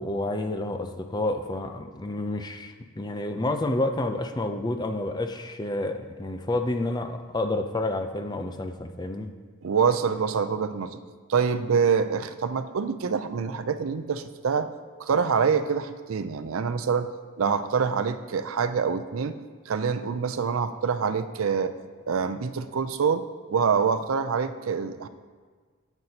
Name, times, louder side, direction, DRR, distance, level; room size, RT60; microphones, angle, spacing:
voice 1, 0.0-9.3, left 2 dB, 20° left, 6 dB, 0.5 m, -29 dB
voice 2, 9.6-11.0 11.3-14.7 15.0-17.1 17.4-19.4 19.7-21.7 22.1-23.2 23.5-25.1, right 6 dB, 75° right, 11 dB, 0.5 m, -25 dB
13.0 x 8.0 x 2.8 m, 1.6 s
head